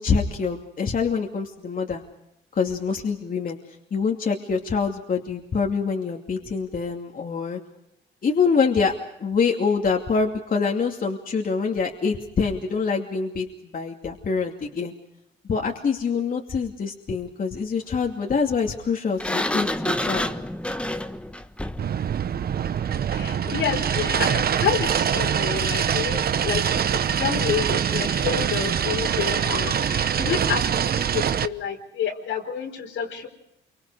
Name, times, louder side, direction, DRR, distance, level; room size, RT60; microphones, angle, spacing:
voice 1, 0.0-2.0 2.5-3.6 3.9-7.6 8.2-8.9 9.2-14.9 15.5-20.3, left 5 dB, 45° left, 1 dB, 2.7 m, -25 dB
Sliding door, 19.2-22.0, left 1 dB, 5° left, 1.3 m, -28 dB
sound 1, 21.8-31.5, right 8 dB, 50° right, 1.0 m, -24 dB
voice 2, 23.1-33.3, left 7 dB, 80° left, 2 dB, 4.8 m, -29 dB
28.0 x 25.0 x 4.9 m, 0.82 s
cardioid pair, 90°, 20 cm